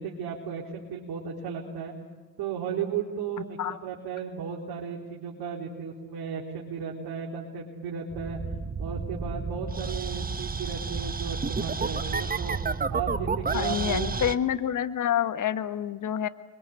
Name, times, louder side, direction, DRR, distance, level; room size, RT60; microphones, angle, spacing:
voice 1, 0.0-1.9 2.4-8.4 8.8-12.6 12.9-14.1, right 6 dB, 60° right, -3 dB, 4.1 m, -35 dB
sound 1, 8.1-14.4, right 4 dB, 20° right, 1.2 m, -31 dB
voice 2, 13.5-16.3, left 10 dB, 45° left, 11 dB, 1.5 m, -27 dB
28.0 x 23.0 x 8.5 m, 1.3 s
hypercardioid pair, 60°, 43 cm